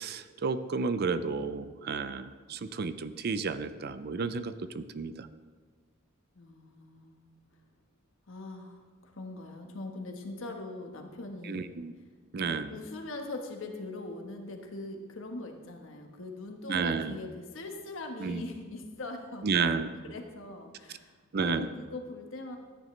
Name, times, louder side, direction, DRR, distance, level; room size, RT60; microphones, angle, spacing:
voice 1, 0.0-5.3 11.5-11.9 12.3-12.7 16.7-17.1 18.2-18.4 19.4-19.9 21.3-21.7, right 5 dB, 50° right, 12 dB, 0.5 m, -31 dB
voice 2, 6.3-7.2 8.3-11.7 12.4-19.5 20.0-22.6, left 2 dB, 65° left, 3 dB, 1.3 m, -41 dB
14.5 x 9.4 x 3.2 m, 1.4 s
head